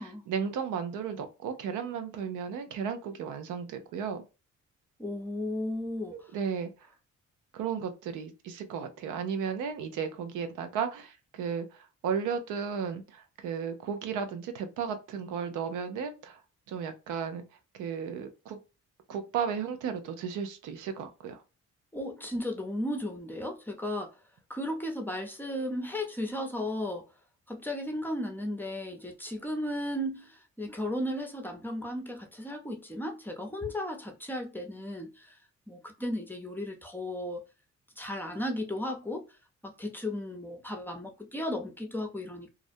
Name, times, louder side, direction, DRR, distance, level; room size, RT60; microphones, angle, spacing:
voice 1, 0.0-4.2 6.1-6.7 7.5-16.4 16.7-17.4 17.7-18.6 19.1-21.4, right 7 dB, 80° right, 0.6 m, -34 dB
voice 2, 5.0-6.3 21.9-24.1 24.5-27.1 27.5-35.4 35.7-37.5 38.0-39.2 39.6-42.5, left 1 dB, 5° left, 0.6 m, -35 dB
2.5 x 2.0 x 2.6 m
cardioid pair, 90°, 30 cm